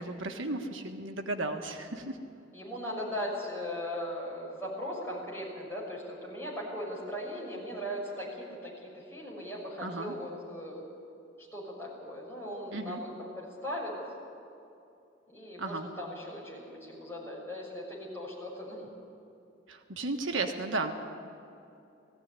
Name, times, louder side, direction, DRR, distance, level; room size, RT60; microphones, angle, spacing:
voice 1, 0.0-2.2 9.8-10.1 12.7-13.0 15.6-15.9 19.7-20.9, right 2 dB, 80° right, 4 dB, 1.5 m, -34 dB
voice 2, 2.5-10.8 11.4-13.9 15.3-18.9, equal, 10° left, -4 dB, 6.5 m, -38 dB
19.5 x 15.5 x 9.8 m, 2.7 s
head